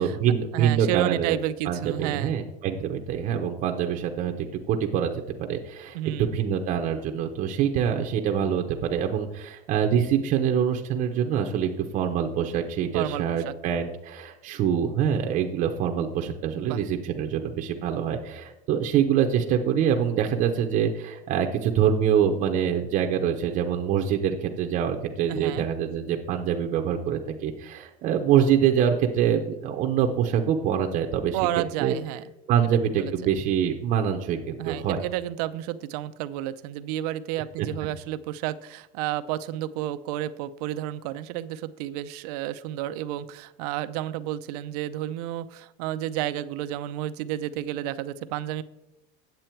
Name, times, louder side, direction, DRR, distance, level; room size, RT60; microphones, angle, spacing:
voice 1, 0.0-1.4 1.6-5.1 5.4-31.4 31.8-31.9 32.5-35.0 37.6-37.7, right 8 dB, 40° right, 3 dB, 0.7 m, -25 dB
voice 2, 0.5-2.3 5.9-6.3 12.9-13.5 16.6-16.8 25.3-25.7 31.3-32.2 32.9-33.3 34.6-48.6, right 13 dB, 85° right, 14 dB, 0.6 m, -31 dB
9.1 x 7.5 x 4.5 m, 0.92 s
cardioid pair, 160°, 20 cm